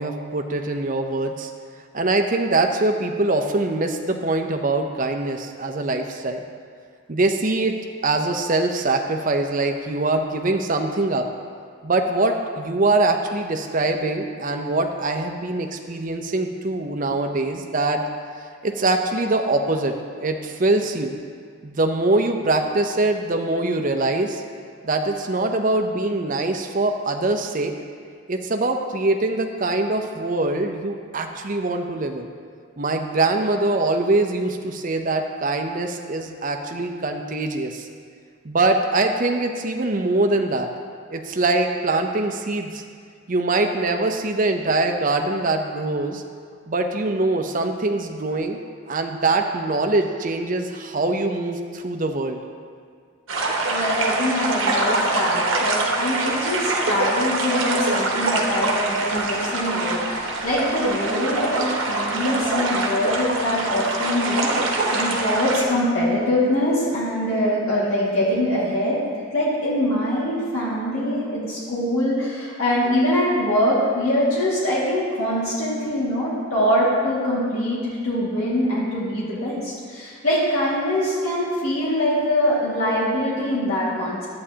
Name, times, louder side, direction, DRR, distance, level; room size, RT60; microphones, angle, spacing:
voice 1, 0.0-1.5 1.9-6.4 7.1-7.7 8.0-11.3 11.8-18.0 18.6-19.9 20.2-21.2 21.6-24.4 24.8-27.7 28.3-32.3 32.8-37.9 38.4-40.7 41.1-42.8 43.3-46.2 46.7-48.6 48.9-52.4, right 2 dB, 40° right, 4 dB, 0.6 m, -23 dB
sound 1, 53.3-65.6, right 2 dB, 65° right, 1.0 m, -24 dB
voice 2, 53.7-69.0 69.3-84.2, left 1 dB, 90° left, -8 dB, 2.0 m, -23 dB
11.0 x 8.6 x 2.8 m, 2.1 s
head